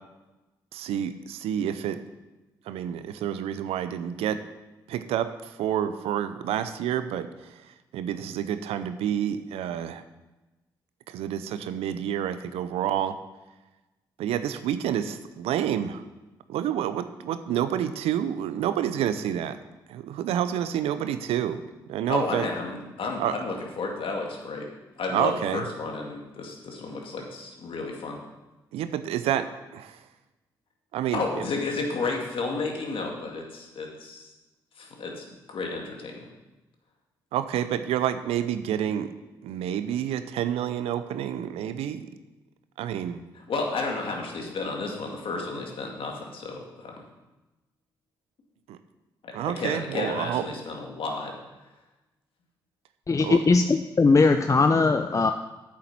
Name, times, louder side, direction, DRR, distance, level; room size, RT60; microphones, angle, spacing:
voice 1, 0.7-2.0 2.7-4.4 4.9-7.6 7.9-10.0 11.1-13.2 14.2-16.0 16.5-19.6 19.9-21.6 21.9-22.5 23.2-23.4 25.1-25.6 28.7-30.0 30.9-31.5 37.3-39.1 39.4-42.1 42.8-43.2 48.7-48.8 49.3-50.4 53.2-53.4, right 10 dB, 75° right, 11 dB, 0.6 m, -29 dB
voice 2, 22.1-24.7 25.0-28.2 31.1-34.3 34.8-36.3 43.5-47.0 49.4-51.3, left 3 dB, 60° left, 1 dB, 2.2 m, -32 dB
voice 3, 53.1-55.3, left 3 dB, 30° left, 7 dB, 0.6 m, -20 dB
8.8 x 7.3 x 6.0 m, 1.1 s
hypercardioid pair, 45°, 10 cm